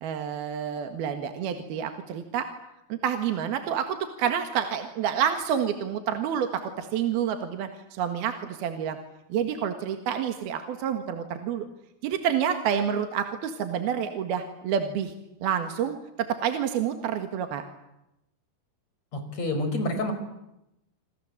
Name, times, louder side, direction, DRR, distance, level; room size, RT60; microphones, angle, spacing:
voice 1, 0.0-2.5 2.9-9.0 9.3-11.7 12.0-15.1 15.4-16.0 16.4-17.6, right 8 dB, 70° right, 7 dB, 3.5 m, -28 dB
voice 2, 19.1-20.1, left 2 dB, 40° left, 7 dB, 6.1 m, -28 dB
28.5 x 26.5 x 7.9 m, 0.87 s
omnidirectional pair, 4.7 m